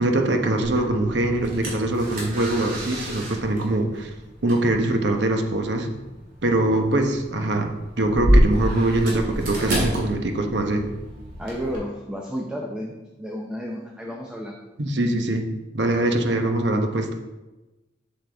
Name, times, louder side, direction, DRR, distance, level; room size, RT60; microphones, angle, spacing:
voice 1, 0.0-4.1 4.4-5.9 6.4-7.7 8.0-10.8 14.8-15.5 15.7-17.1, right 1 dB, 70° right, 4 dB, 1.0 m, -23 dB
sound 1, 0.6-11.8, equal, 50° right, 2.4 m, -28 dB
voice 2, 11.4-14.7, equal, 5° right, -1 dB, 0.6 m, -32 dB
7.6 x 6.8 x 3.4 m, 1.1 s
head